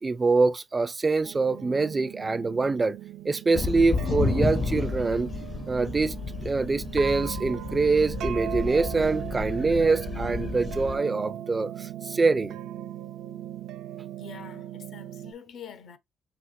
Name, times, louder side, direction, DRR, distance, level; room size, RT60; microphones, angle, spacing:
voice 1, 0.0-3.0 3.2-5.3 5.7-6.2 6.4-12.6, right 3 dB, 25° right, 0.4 m, -24 dB
sound 1, 1.2-15.3, right 11 dB, 85° right, 0.5 m, -38 dB
sound 2, 3.5-11.0, left 4 dB, 40° left, 0.6 m, -31 dB
voice 2, 14.2-16.0, left 7 dB, 70° left, 0.9 m, -45 dB
5.8 x 2.7 x 2.6 m
cardioid pair, 90°, 0 cm